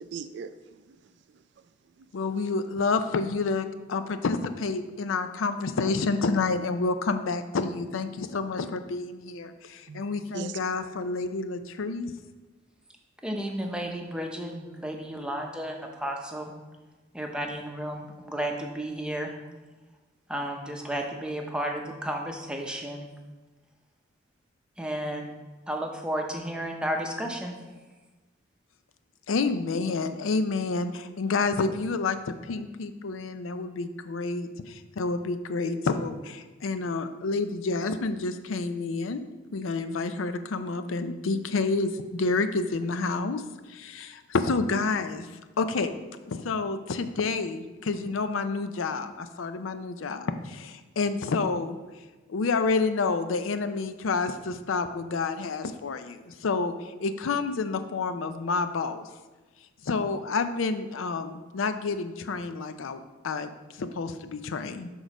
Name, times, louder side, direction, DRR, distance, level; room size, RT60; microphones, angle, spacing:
voice 1, 0.0-1.4 2.0-2.1 2.6-2.7 9.9-10.0 10.3-10.6, right 6 dB, 60° right, 11 dB, 0.3 m, -40 dB
voice 2, 2.1-12.1 29.3-39.2 39.5-43.4 43.7-45.9 46.3-51.8 52.3-59.1 59.8-64.9, left 4 dB, 85° left, 10 dB, 0.5 m, -29 dB
voice 3, 13.2-16.5 17.1-19.3 20.3-23.1 24.8-25.3 25.7-27.6, right 1 dB, 5° right, 2 dB, 0.7 m, -33 dB
6.1 x 3.9 x 6.0 m, 1.2 s
head